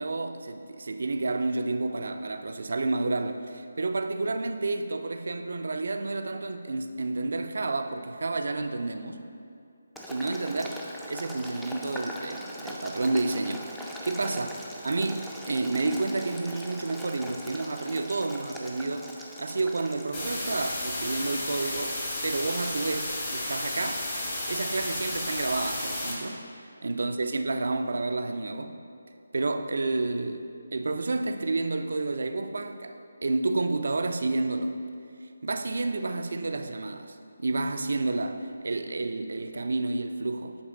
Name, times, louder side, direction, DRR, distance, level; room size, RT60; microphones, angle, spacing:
voice 1, 0.0-9.2 10.1-10.8 11.1-14.5 14.8-19.1 19.4-24.1 24.5-26.4 26.8-28.8 29.3-30.4 30.7-34.8 35.4-40.6, right 3 dB, 65° right, 8 dB, 0.4 m, -30 dB
Boiling, 10.0-20.3, equal, 5° left, 0.4 m, -41 dB
sound 1, 20.1-26.1, left 1 dB, 35° left, 1.4 m, -33 dB
8.0 x 3.2 x 3.7 m, 2.5 s
figure-of-eight pair, 155°, 0 cm